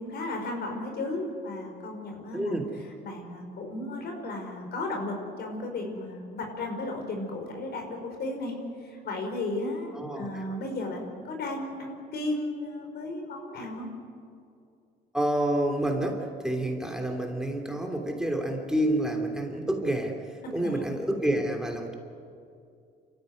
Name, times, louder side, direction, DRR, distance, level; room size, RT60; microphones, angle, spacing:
voice 1, 0.0-2.6 3.0-13.9 20.4-20.7, left 2 dB, 60° left, 3 dB, 5.4 m, -34 dB
voice 2, 2.3-2.7 9.9-10.4 15.1-20.1 20.5-21.9, right 1 dB, 5° right, 2 dB, 3.0 m, -28 dB
26.5 x 14.5 x 9.6 m, 2.4 s
cardioid pair, 90°, 18 cm